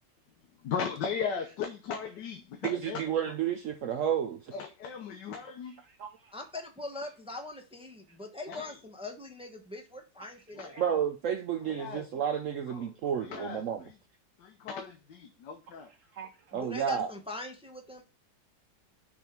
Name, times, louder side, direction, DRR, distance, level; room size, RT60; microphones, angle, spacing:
voice 1, 0.6-3.1 4.5-5.7 8.5-8.8 10.5-11.0 11.6-12.1 12.7-12.9 13.2-13.9 14.4-15.9, left 6 dB, 75° left, 1.4 m, -37 dB
voice 2, 2.6-4.5 6.0-6.1 10.7-13.9 16.2-17.1, right 8 dB, 75° right, 0.7 m, -31 dB
voice 3, 6.3-10.8 16.5-18.0, left 2 dB, 5° right, 0.5 m, -42 dB
6.2 x 3.4 x 5.8 m
omnidirectional pair, 1.9 m